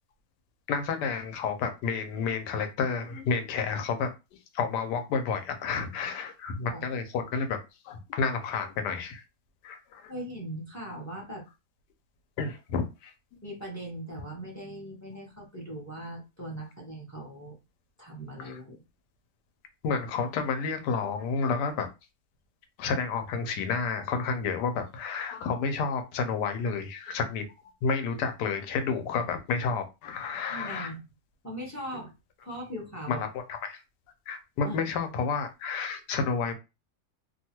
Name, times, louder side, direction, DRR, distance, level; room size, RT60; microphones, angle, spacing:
voice 1, 0.7-4.1 4.5-7.6 7.8-9.2 9.6-10.1 12.4-13.1 18.4-18.6 19.8-21.9 22.8-27.4 27.8-30.9 33.1-33.8 34.3-36.5, left 5 dB, 85° left, 1.2 m, -30 dB
voice 2, 10.1-11.5 13.4-17.6 18.0-18.8 30.5-31.0 31.4-32.1 32.4-33.2 34.6-34.8, right 1 dB, 15° left, 0.5 m, -39 dB
2.8 x 2.3 x 2.9 m
omnidirectional pair, 1.8 m